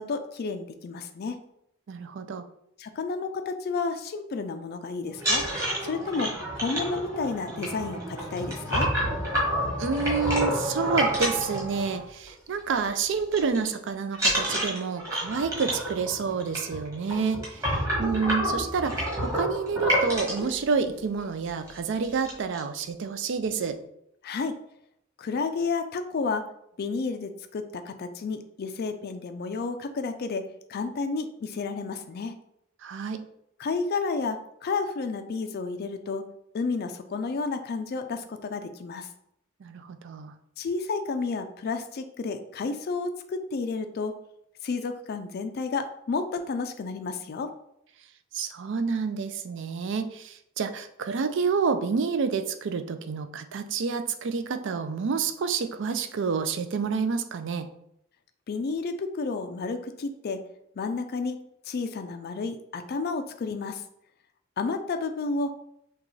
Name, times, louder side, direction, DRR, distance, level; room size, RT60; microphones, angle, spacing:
voice 1, 0.0-1.4 2.8-5.4 5.8-8.9 24.2-24.6 25.2-26.5 26.8-30.4 30.7-32.4 33.6-36.2 36.5-39.1 40.6-44.1 44.6-47.5 58.5-60.4 60.8-61.4 61.7-63.8 64.6-65.5, left 4 dB, 50° left, 7 dB, 0.4 m, -31 dB
voice 2, 1.9-2.5 9.8-23.8 32.8-33.3 39.6-40.3 48.3-57.7, right 5 dB, 60° right, 9 dB, 0.4 m, -29 dB
sound 1, 5.1-12.3 12.6-12.9 13.1-13.7 14.1-20.5 21.2-21.3 21.6-21.8 22.0-22.6, equal, 15° right, 1.5 m, -29 dB
6.0 x 2.4 x 3.2 m, 0.75 s
head